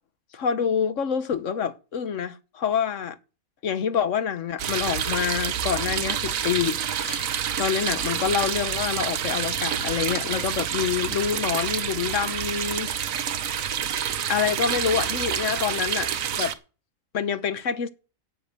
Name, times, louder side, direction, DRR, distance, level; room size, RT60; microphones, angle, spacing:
voice 1, 0.3-3.2 3.6-7.3 7.6-12.9 14.3-16.5 17.1-17.9, left 7 dB, 65° left, 1.3 m, -27 dB
sound 1, 4.6-16.5, right 9 dB, 80° right, 1.3 m, -28 dB
11.0 x 7.3 x 8.5 m
omnidirectional pair, 1.4 m